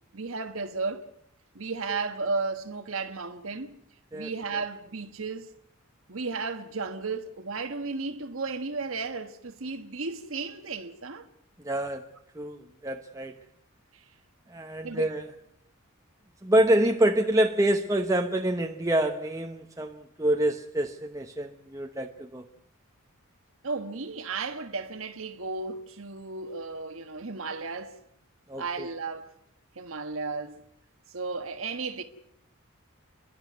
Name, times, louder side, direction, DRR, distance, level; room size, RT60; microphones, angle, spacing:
voice 1, 0.1-1.1 1.5-3.8 4.1-5.5 6.1-11.3 13.9-14.0 14.8-15.1 23.6-28.0 28.6-29.3 29.7-30.5 31.1-32.0, right 4 dB, 70° right, 1.4 m, -34 dB
voice 2, 11.6-13.4 14.5-15.3 16.4-22.5 28.5-28.9, right 1 dB, 15° right, 0.9 m, -27 dB
30.0 x 11.5 x 9.4 m
head